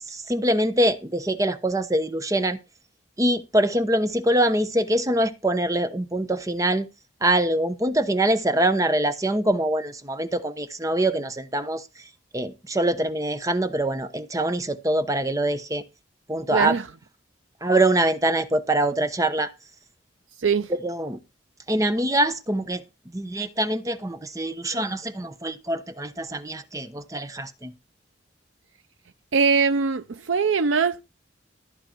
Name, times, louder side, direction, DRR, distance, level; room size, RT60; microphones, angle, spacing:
voice 1, 0.1-2.6 3.2-6.9 7.2-11.8 12.3-15.8 16.3-16.7 17.6-19.5 20.7-21.2 21.7-22.8 23.1-27.7, right 1 dB, 15° right, 1.0 m, -24 dB
voice 2, 16.5-16.9 20.4-20.7 29.3-31.0, right 5 dB, 90° right, 0.6 m, -22 dB
14.0 x 8.8 x 4.5 m
head